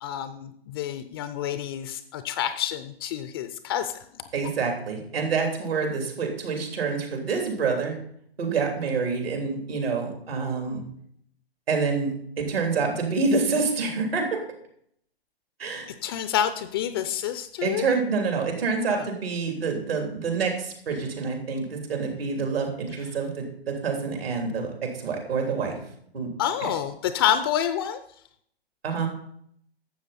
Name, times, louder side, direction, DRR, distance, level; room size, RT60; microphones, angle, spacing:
voice 1, 0.0-4.0 16.0-17.8 18.9-19.1 26.4-28.0, left 10 dB, 25° left, 11 dB, 0.4 m, -28 dB
voice 2, 4.3-7.9 8.4-10.8 11.7-14.4 15.6-15.9 17.6-25.8 26.1-26.3 28.8-29.1, right 4 dB, 70° right, 2 dB, 3.3 m, -27 dB
12.0 x 7.8 x 4.1 m, 0.69 s
figure-of-eight pair, 125°, 31 cm